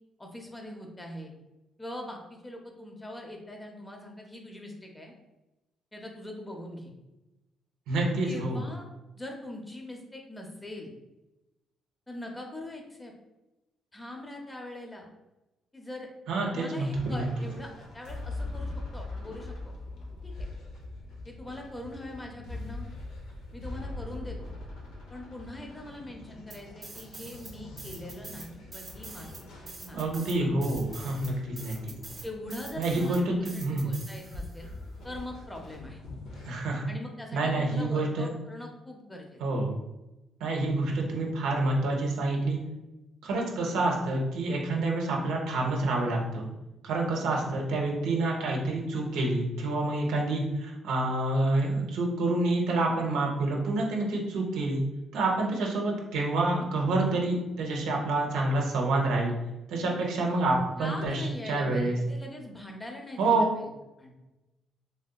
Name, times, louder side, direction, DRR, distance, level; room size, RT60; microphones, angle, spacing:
voice 1, 0.2-1.3 1.8-5.1 5.9-6.9 8.2-8.9 9.1-10.9 12.1-13.1 13.9-15.1 15.7-16.1 16.5-19.6 20.2-20.3 21.2-22.9 23.5-24.5 25.1-29.3 29.6-30.2 32.2-34.7 35.0-36.0 36.9-39.4 60.8-63.6 64.0-64.1, left 1 dB, 15° left, 1 dB, 0.6 m, -42 dB
voice 2, 7.9-8.6 16.3-17.3 29.9-31.8 32.8-33.9 36.5-36.8 37.3-38.3 39.4-39.8 40.4-42.6 43.2-46.5 46.8-54.8 55.1-59.3 59.7-62.0 63.2-63.6, right 2 dB, 85° right, -1 dB, 0.6 m, -28 dB
sound 1, 16.9-36.6, left 2 dB, 85° left, 0.6 m, -42 dB
sound 2, 26.5-27.5 27.8-34.6, right 3 dB, 35° right, 0.5 m, -45 dB
3.3 x 2.7 x 2.2 m, 0.99 s
cardioid pair, 90°, 0 cm